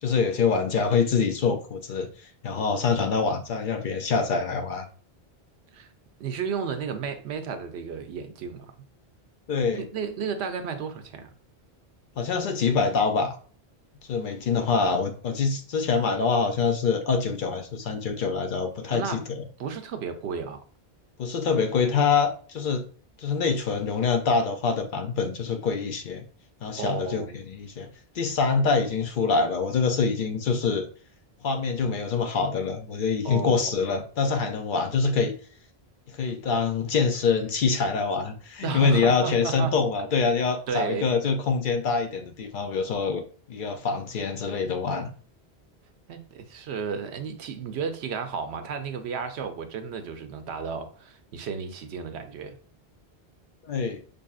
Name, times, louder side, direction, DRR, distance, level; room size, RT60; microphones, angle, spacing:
voice 1, 0.0-2.1 2.4-4.9 9.5-9.8 12.2-13.4 14.1-19.4 21.2-22.9 23.2-26.2 26.6-27.9 28.1-30.9 31.4-35.3 36.1-45.1 53.6-54.0, left 5 dB, 60° left, 0.6 m, -25 dB
voice 2, 6.2-8.7 9.7-11.3 18.9-19.2 19.6-20.6 26.8-27.4 33.2-34.0 38.6-39.7 40.7-41.1 46.1-52.6, right 6 dB, 85° right, 0.9 m, -33 dB
5.4 x 2.5 x 2.3 m
omnidirectional pair, 1.1 m